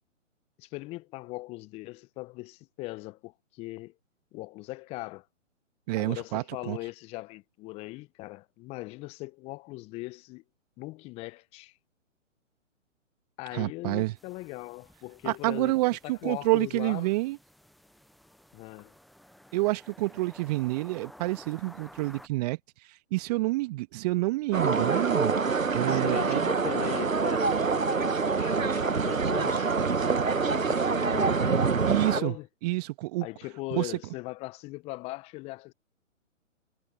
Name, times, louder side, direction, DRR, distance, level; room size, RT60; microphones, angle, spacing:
voice 1, 0.6-3.9 4.3-5.3 6.0-10.4 10.8-11.8 13.4-15.8 16.0-17.1 18.5-19.0 25.9-29.7 30.3-32.5 33.2-35.7, left 21 dB, 15° left, 0.9 m, -40 dB
voice 2, 5.9-6.8 13.5-14.1 15.2-17.4 19.5-22.6 22.9-25.3 25.7-26.5 31.9-32.3 32.6-33.3 33.7-33.9, right 21 dB, 30° right, 1.9 m, -28 dB
sound 1, 14.2-22.3, equal, ahead, 0.4 m, -54 dB
sound 2, 24.5-32.2, right 4 dB, 85° right, 1.4 m, -26 dB
figure-of-eight pair, 130°, 39 cm